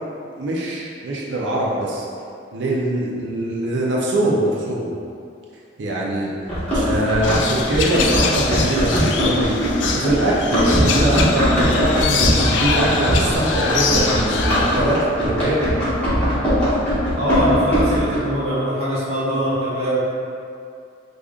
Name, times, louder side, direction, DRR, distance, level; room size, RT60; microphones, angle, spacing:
voice 1, 0.4-2.1 2.5-4.9 5.8-6.3 6.7-9.6 9.9-15.6, right 1 dB, 75° right, -4 dB, 0.5 m, -22 dB
Run, 6.5-18.2, equal, 5° left, 1.5 m, -20 dB
sound 1, 7.2-14.8, left 5 dB, 75° left, 0.3 m, -24 dB
voice 2, 17.1-20.1, equal, 35° right, -10 dB, 0.9 m, -22 dB
4.9 x 2.5 x 2.4 m, 2.5 s
head